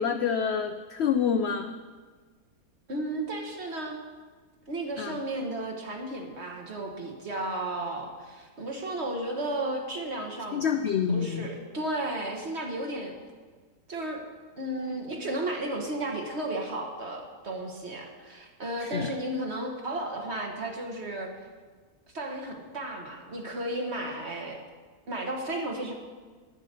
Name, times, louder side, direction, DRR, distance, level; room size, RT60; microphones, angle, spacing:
voice 1, 0.0-1.8 5.0-5.2 10.5-11.5 18.8-19.1, left 7 dB, 65° left, 7 dB, 0.6 m, -27 dB
voice 2, 2.9-4.0 4.7-10.7 11.1-13.1 13.9-14.2 14.6-21.3 22.1-24.6 25.1-25.9, right 1 dB, 45° right, 1 dB, 1.7 m, -33 dB
9.9 x 9.6 x 6.7 m, 1.5 s
omnidirectional pair, 1.6 m